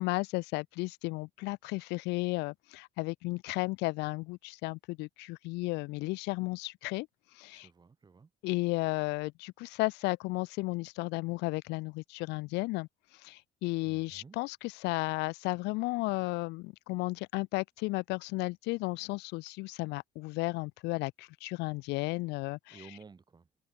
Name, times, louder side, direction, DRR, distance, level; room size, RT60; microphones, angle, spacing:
voice 1, 0.0-7.1 7.3-7.7 8.4-22.8, left 24 dB, 90° left, 0.4 m, -34 dB
voice 2, 7.5-8.3 13.9-14.4 22.7-23.5, right 4 dB, 25° right, 2.1 m, -54 dB
cardioid pair, 110°, 17 cm